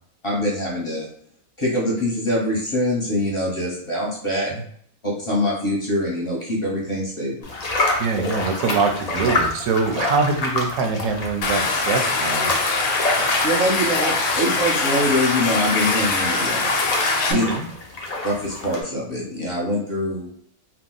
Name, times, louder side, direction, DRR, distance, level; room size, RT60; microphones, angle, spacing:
voice 1, 0.2-1.1 1.6-4.5 5.0-7.5 13.4-16.7 17.3-17.5 18.2-20.3, left 1 dB, 25° left, -5 dB, 0.9 m, -24 dB
sound 1, 7.4-18.8, left 2 dB, 45° left, 0.5 m, -28 dB
voice 2, 8.0-12.6 17.3-17.7, right 4 dB, 85° right, 4 dB, 1.0 m, -23 dB
Stream, 11.4-17.3, left 3 dB, 80° left, 1.0 m, -22 dB
2.8 x 2.2 x 3.8 m, 0.64 s
omnidirectional pair, 1.4 m